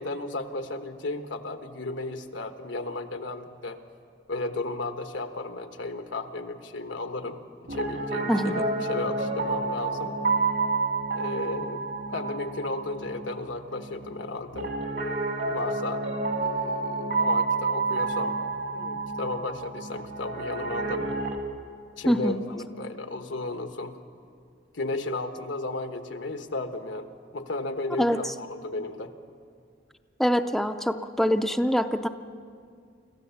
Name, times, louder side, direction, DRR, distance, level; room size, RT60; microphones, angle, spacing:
voice 1, 0.0-3.8 4.3-7.4 7.7-10.2 11.1-14.7 15.5-16.0 16.4-18.4 18.7-21.1 22.0-24.0 24.7-29.1, left 2 dB, 85° left, 7 dB, 1.2 m, -34 dB
Piano, 7.7-21.4, right 3 dB, 65° right, 2.0 m, -29 dB
voice 2, 8.3-8.6 22.1-22.4 28.0-28.3 30.2-32.1, equal, ahead, 7 dB, 0.5 m, -24 dB
25.5 x 14.5 x 7.1 m, 2.2 s
head